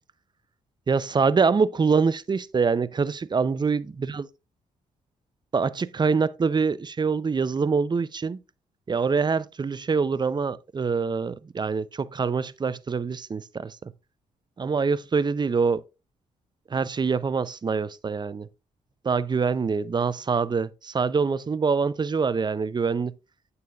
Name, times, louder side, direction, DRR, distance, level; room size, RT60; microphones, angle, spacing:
voice 1, 0.9-4.2 5.5-8.4 8.9-13.9 14.6-15.8 16.7-18.5 19.0-23.1, right 5 dB, 30° right, 0.5 m, -25 dB
8.4 x 6.8 x 2.4 m
supercardioid pair, 50°, 16 cm